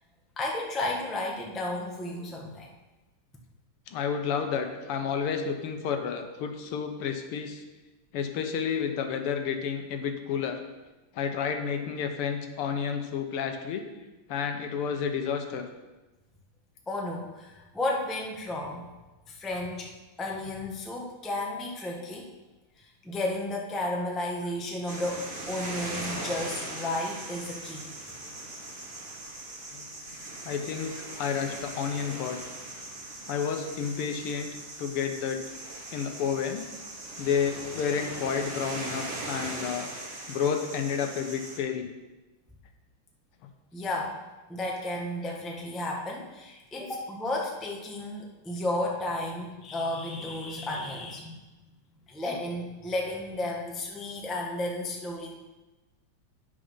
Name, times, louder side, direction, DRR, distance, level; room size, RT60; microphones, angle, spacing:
voice 1, 0.4-2.7 16.9-18.8 19.3-19.9 20.2-22.3 22.8-27.9 43.7-44.2 44.5-51.4 52.1-55.4, left 1 dB, ahead, -1 dB, 0.6 m, -33 dB
voice 2, 3.9-7.6 8.1-10.6 11.1-13.8 14.3-15.7 29.7-29.9 30.5-32.4 33.3-34.5 34.8-35.4 35.9-36.7 37.2-39.9 40.3-41.9, left 7 dB, 85° left, 6 dB, 1.8 m, -30 dB
sound 1, 24.9-41.6, right 2 dB, 30° right, 1.2 m, -39 dB
9.1 x 6.5 x 5.5 m, 1.1 s
omnidirectional pair, 2.4 m